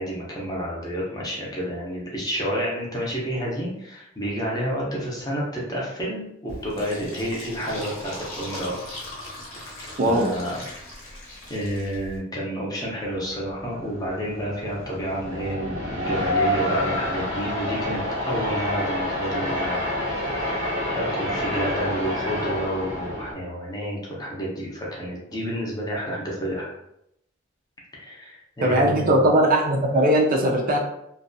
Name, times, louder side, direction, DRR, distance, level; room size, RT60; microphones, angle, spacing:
voice 1, 0.0-8.8 9.8-10.6 11.5-19.9 20.9-26.7 27.9-29.2, equal, 20° left, -4 dB, 0.6 m, -30 dB
Fill (with liquid), 6.5-12.2, left 1 dB, 80° left, 0.9 m, -39 dB
voice 2, 10.0-10.3 28.6-30.8, right 1 dB, 45° right, 0 dB, 0.4 m, -19 dB
sound 1, 13.0-23.3, left 1 dB, 85° right, 0.8 m, -28 dB
2.6 x 2.2 x 2.6 m, 0.79 s
head